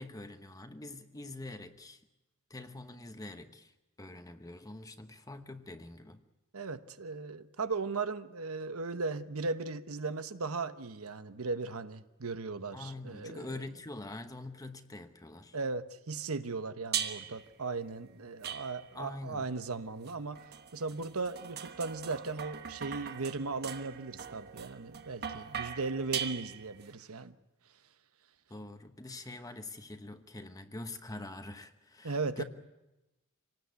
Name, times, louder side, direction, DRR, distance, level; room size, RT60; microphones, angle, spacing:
voice 1, 0.0-2.0 2.5-6.2 12.7-15.6 18.9-19.5 28.5-32.4, left 2 dB, 15° left, 7 dB, 1.0 m, -45 dB
voice 2, 6.5-13.6 15.5-20.4 20.7-27.3 32.0-32.4, right 3 dB, 75° right, 11 dB, 1.1 m, -37 dB
sound 1, 16.9-17.5 18.4-19.1 20.1-26.9, right 8 dB, 50° right, 1.3 m, -40 dB
25.5 x 19.0 x 8.2 m, 1.0 s
head